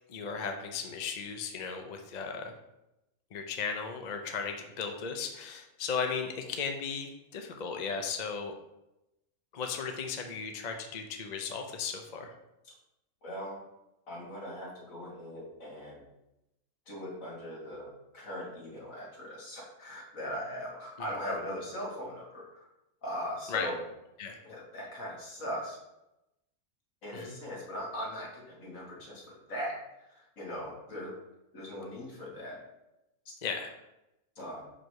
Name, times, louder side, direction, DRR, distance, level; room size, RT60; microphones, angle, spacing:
voice 1, 0.1-2.5 3.3-8.5 9.5-12.3 21.0-21.1 23.5-23.7 24.2-24.4 27.1-27.4 33.4-33.7, left 5 dB, 45° left, 4 dB, 0.6 m, -36 dB
voice 2, 13.2-13.6 14.1-16.0 16.9-22.7 23.0-23.8 24.4-25.8 27.0-29.8 30.1-31.2 31.5-32.6 34.4-34.7, equal, 65° left, -3 dB, 2.3 m, -39 dB
6.1 x 5.0 x 4.6 m, 0.90 s
omnidirectional pair, 1.6 m